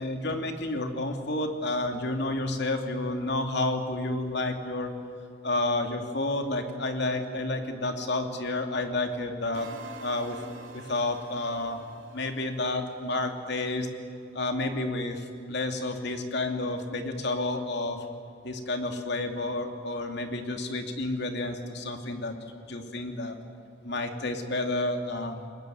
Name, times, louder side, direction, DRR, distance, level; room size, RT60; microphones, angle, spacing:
voice 1, 0.0-4.9 5.4-9.7 10.0-10.4 10.7-11.8 12.1-13.9 14.3-18.0 18.4-22.4 22.7-23.4 23.8-25.4, left 2 dB, 60° left, 5 dB, 2.6 m, -30 dB
sound 1, 9.5-13.6, right 3 dB, 80° right, 2.9 m, -47 dB
23.0 x 20.5 x 9.3 m, 2.5 s
head